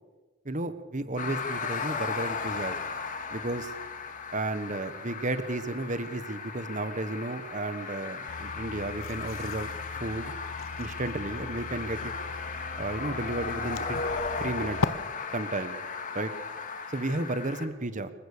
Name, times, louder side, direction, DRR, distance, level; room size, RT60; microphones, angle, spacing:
voice 1, 0.4-2.8 3.3-3.7 4.3-9.7 10.0-10.3 10.8-12.1 12.8-14.0 14.3-14.8 15.3-15.8 16.1-16.3 16.9-18.1, right 2 dB, 35° right, 12 dB, 1.2 m, -33 dB
sound 1, 1.2-17.7, left 5 dB, 40° left, 2.0 m, -36 dB
sound 2, 8.3-14.9, left 3 dB, 75° left, 0.9 m, -38 dB
27.5 x 15.5 x 6.7 m, 1.2 s
head